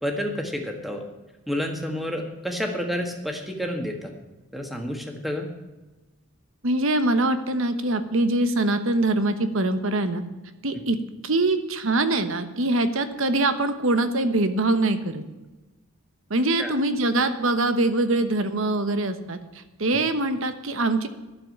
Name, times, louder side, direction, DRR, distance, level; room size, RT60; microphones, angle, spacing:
voice 1, 0.0-1.0 1.5-4.1 4.5-5.5 16.6-16.7 19.9-20.0, equal, ahead, 3 dB, 1.6 m, -29 dB
voice 2, 6.6-10.2 10.6-11.0 11.2-15.2 16.3-19.4 19.8-21.1, right 2 dB, 65° right, 10 dB, 1.1 m, -23 dB
11.5 x 7.3 x 9.1 m, 1.1 s
head